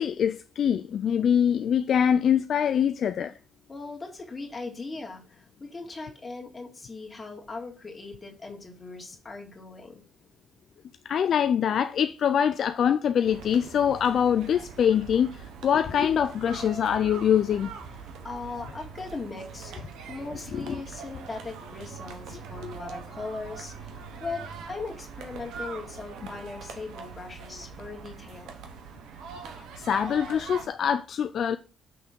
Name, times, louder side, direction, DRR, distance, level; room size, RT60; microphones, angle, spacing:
voice 1, 0.0-3.3 11.1-17.7 20.5-20.6 29.8-31.6, left 8 dB, 60° left, 0.3 m, -24 dB
voice 2, 3.7-10.0 18.2-28.5, left 3 dB, 25° left, 2.0 m, -39 dB
sound 1, 13.2-30.7, right 5 dB, 85° right, 1.0 m, -42 dB
6.1 x 3.5 x 5.1 m
cardioid pair, 90°, 0 cm